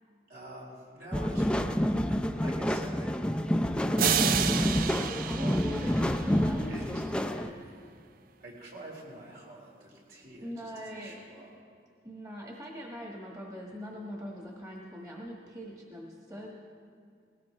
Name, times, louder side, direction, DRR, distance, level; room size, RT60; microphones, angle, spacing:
voice 1, 0.3-6.1 6.7-7.0 8.4-11.5, right 1 dB, 70° right, -4 dB, 4.4 m, -47 dB
sound 1, 1.1-7.5, equal, 5° left, 0.4 m, -28 dB
sound 2, 4.0-6.7, right 9 dB, 50° right, 0.4 m, -30 dB
voice 2, 5.3-7.6 10.4-11.2 12.0-16.5, equal, 20° right, -2 dB, 1.5 m, -42 dB
21.0 x 17.5 x 3.2 m, 2.2 s
head